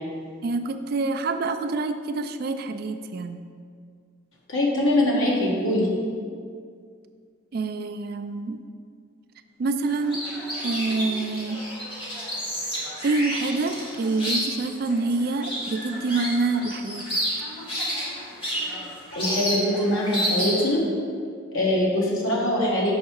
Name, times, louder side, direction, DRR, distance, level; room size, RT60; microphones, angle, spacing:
voice 1, 0.4-3.5 7.5-8.6 9.6-10.3 10.6-11.6 12.8-17.1, right 3 dB, 45° right, 8 dB, 0.3 m, -27 dB
voice 2, 4.5-5.9 19.1-20.8 21.5-22.9, left 1 dB, 80° left, -3 dB, 1.3 m, -23 dB
sound 1, 9.9-20.8, equal, 25° left, 1.4 m, -30 dB
6.4 x 4.7 x 4.5 m, 2.2 s
head